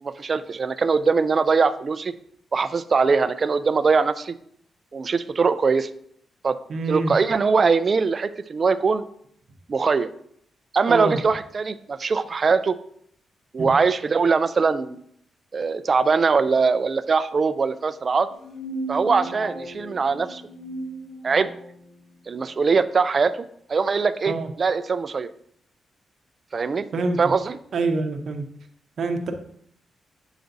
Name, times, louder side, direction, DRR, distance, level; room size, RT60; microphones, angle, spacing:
voice 1, 0.0-2.1 2.5-4.4 4.9-5.9 6.4-6.6 6.9-9.0 9.7-10.1 10.7-12.8 13.5-15.0 15.5-18.3 18.9-20.4 21.2-21.5 22.3-23.4 23.7-25.3 26.5-26.9 27.2-27.6, right 4 dB, 40° right, 13 dB, 0.4 m, -21 dB
voice 2, 6.7-7.1 10.9-11.2 13.6-13.7 24.3-24.5 26.9-27.2 27.7-28.4 29.0-29.3, right 3 dB, 60° right, 6 dB, 0.7 m, -25 dB
sound 1, 18.3-21.7, right 1 dB, 55° left, 0.8 m, -35 dB
8.0 x 4.9 x 2.6 m, 0.68 s
cardioid pair, 95°, 0 cm